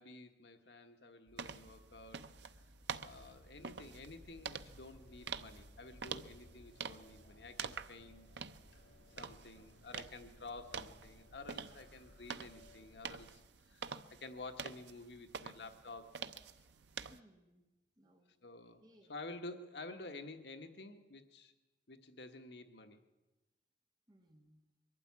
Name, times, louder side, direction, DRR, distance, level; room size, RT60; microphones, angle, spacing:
voice 1, 0.0-2.5 3.0-8.3 9.2-16.1 18.4-18.8 19.1-21.5 21.9-23.0, left 2 dB, 75° left, 7 dB, 1.4 m, -51 dB
sound 1, 1.3-6.8, left 1 dB, 50° right, 1.7 m, -63 dB
sound 2, 1.4-17.2, right 6 dB, 80° right, 0.7 m, -48 dB
sound 3, 3.0-13.4, left 1 dB, 90° left, 3.6 m, -61 dB
voice 2, 9.2-10.1 15.4-15.8 16.5-17.7 18.0-18.3 18.8-19.2 24.1-24.6, equal, 20° right, 3 dB, 1.4 m, -68 dB
22.5 x 12.0 x 9.5 m, 1.1 s
head